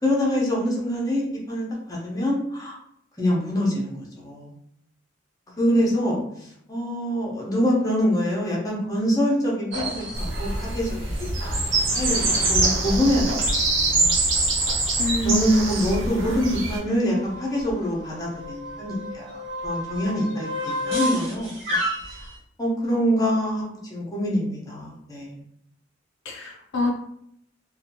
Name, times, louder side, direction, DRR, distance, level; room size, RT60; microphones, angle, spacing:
voice 1, 0.0-2.8 3.2-4.5 5.6-10.9 11.4-12.2 12.5-14.2 15.2-21.8 22.1-22.3 22.6-25.4, equal, 20° left, -4 dB, 0.8 m, -25 dB
sound 1, 9.7-22.4, equal, 60° right, 1.2 m, -33 dB
sound 2, 10.1-16.8, right 2 dB, 80° right, 0.9 m, -24 dB
voice 2, 15.0-15.8 26.3-26.9, left 1 dB, 70° left, 1 dB, 0.5 m, -24 dB
2.7 x 2.3 x 2.8 m, 0.71 s
head